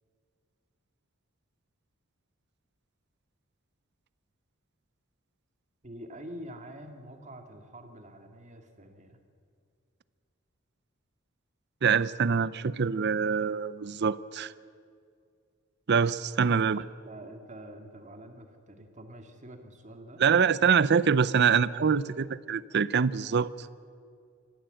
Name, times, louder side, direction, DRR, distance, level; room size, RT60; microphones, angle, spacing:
voice 1, 5.8-9.2 16.5-20.2, right 1 dB, 35° right, 5 dB, 2.0 m, -46 dB
voice 2, 11.8-14.5 15.9-16.8 20.2-23.5, right 6 dB, 55° right, 17 dB, 0.6 m, -25 dB
26.0 x 14.5 x 7.9 m, 2.3 s
head